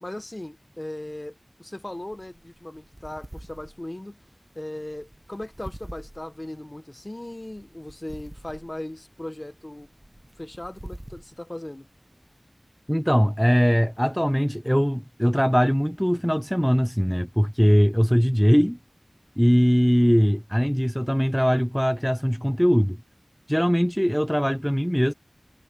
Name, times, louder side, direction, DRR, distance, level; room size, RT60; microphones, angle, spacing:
voice 1, 0.0-4.2 4.5-9.9 10.4-11.9, left 1 dB, 35° left, 1.3 m, -38 dB
sound 1, 1.8-12.4, right 1 dB, 20° right, 0.9 m, -46 dB
voice 2, 12.9-18.8 19.4-23.0 23.5-25.1, equal, ahead, 0.3 m, -21 dB
wide cardioid pair, 50°, 0 cm